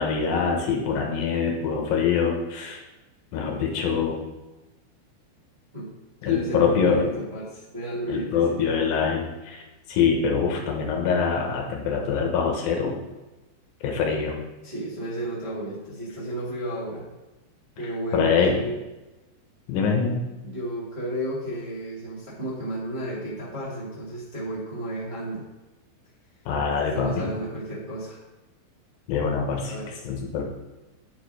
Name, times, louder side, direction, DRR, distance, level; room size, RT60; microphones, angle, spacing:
voice 1, 0.0-2.8 3.3-4.2 6.2-7.1 8.1-12.9 13.8-14.4 18.1-18.6 19.7-20.2 26.5-27.3 29.1-29.7 30.0-30.4, left 6 dB, 70° left, 1 dB, 2.3 m, -24 dB
voice 2, 6.2-8.6 14.6-17.0 17.8-18.8 20.4-25.4 26.9-28.2 29.7-29.9, right 1 dB, 25° right, -10 dB, 0.9 m, -32 dB
9.3 x 4.8 x 4.8 m, 1.1 s
omnidirectional pair, 5.2 m